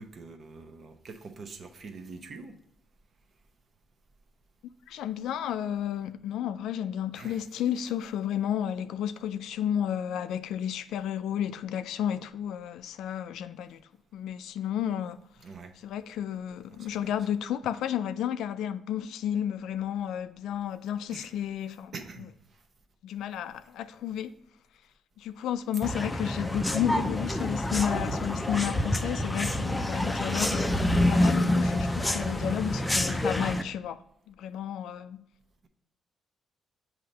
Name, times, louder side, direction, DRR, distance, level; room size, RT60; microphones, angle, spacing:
voice 1, 0.0-2.5 7.1-7.4 15.4-15.7 16.7-17.1 21.1-21.3 21.9-22.6 26.4-26.6, right 4 dB, 50° right, 0.8 m, -45 dB
voice 2, 4.9-13.8 14.1-15.2 15.8-22.3 23.0-24.3 25.2-30.7 31.1-34.0 34.3-35.2, left 10 dB, 85° left, 0.3 m, -32 dB
sound 1, 25.8-33.6, left 1 dB, 10° left, 0.4 m, -27 dB
7.5 x 2.8 x 5.2 m
cardioid pair, 90°, 0 cm